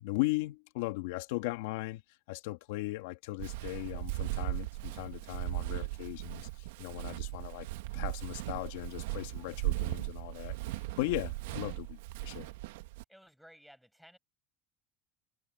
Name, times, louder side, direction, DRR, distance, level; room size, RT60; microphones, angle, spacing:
voice 1, 0.0-2.0 2.3-7.7 7.9-12.5, left 20 dB, 80° left, 2.2 m, -37 dB
Walk footsteps, 3.4-13.0, right 19 dB, 85° right, 1.5 m, -38 dB
voice 2, 13.1-14.2, equal, ahead, 5.5 m, -57 dB
supercardioid pair, 105°, 0 cm